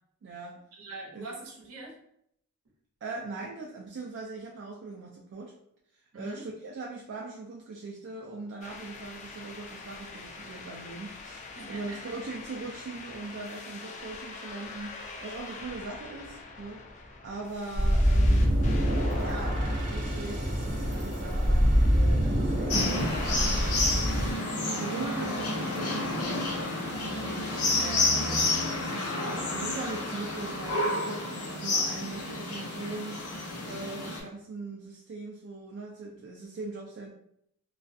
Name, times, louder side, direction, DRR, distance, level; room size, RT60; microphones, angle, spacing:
voice 1, 0.2-0.6 1.1-1.3 3.0-5.5 6.1-18.6 19.2-23.0 23.4-23.5 24.7-26.1 26.8-37.1, right 3 dB, 55° right, -2 dB, 0.3 m, -40 dB
voice 2, 0.7-1.9 6.1-6.4 11.5-12.0 26.9-27.4, right 2 dB, 70° right, -2 dB, 0.8 m, -44 dB
sound 1, 8.6-19.3, left 3 dB, 30° left, 0.3 m, -44 dB
sound 2, 17.7-24.3, equal, 35° right, 0.7 m, -25 dB
sound 3, 22.7-34.2, left 2 dB, 75° left, 0.7 m, -30 dB
2.3 x 2.1 x 2.5 m, 0.73 s
head